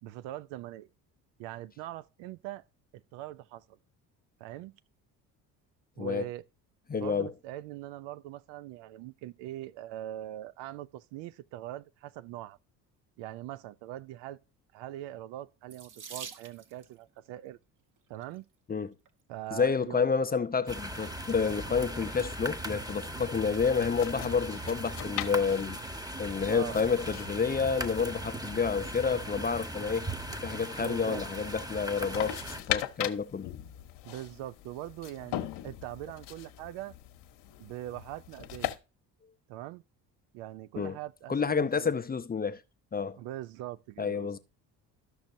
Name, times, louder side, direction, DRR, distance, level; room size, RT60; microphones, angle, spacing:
voice 1, 0.0-0.9 1.4-2.6 2.9-3.8 4.4-4.7 6.0-6.4 6.9-12.6 13.2-14.4 14.7-17.6 18.1-18.5 19.3-20.1 26.5-26.8 30.8-31.2 34.0-36.9 37.6-38.8 39.5-39.8 40.3-42.0 43.2-44.4, right 14 dB, 65° right, 0.6 m, -42 dB
voice 2, 6.9-7.3 18.7-18.9 19.5-25.8 26.2-30.1 30.4-32.4 32.7-33.5 40.8-41.0 41.3-42.6 42.9-43.2 44.0-44.4, left 5 dB, 20° left, 0.6 m, -29 dB
Water tap faucet / Sink (filling or washing), 15.7-16.9 18.0-18.4 19.1-19.2 19.5-19.6, right 6 dB, 40° right, 1.2 m, -45 dB
sound 1, 20.7-32.6, right 1 dB, 10° right, 1.1 m, -39 dB
sound 2, 22.9-38.8, left 13 dB, 60° left, 1.0 m, -41 dB
13.0 x 6.2 x 2.7 m
hypercardioid pair, 55°, 48 cm